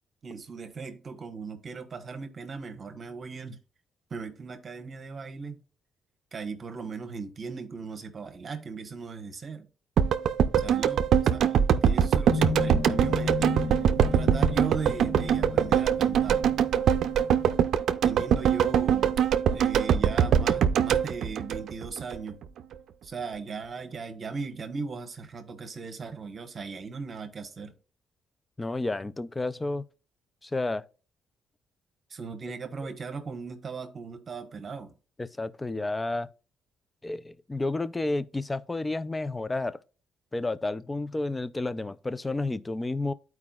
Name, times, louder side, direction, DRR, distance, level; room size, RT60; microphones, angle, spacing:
voice 1, 0.2-3.6 4.1-5.6 6.3-9.7 10.6-16.4 18.0-19.2 19.5-22.4 23.0-27.7 32.1-34.9, right 4 dB, 40° right, 1.2 m, -38 dB
sound 1, 10.0-22.2 22.4-22.5, right 8 dB, 70° right, 0.5 m, -23 dB
sound 2, 12.3-17.6, left 4 dB, 80° left, 1.0 m, -34 dB
voice 2, 28.6-29.8 30.4-30.9 35.2-36.3 37.0-39.8 40.3-43.1, left 2 dB, 20° left, 0.4 m, -31 dB
12.0 x 4.7 x 2.4 m
cardioid pair, 90°, 0 cm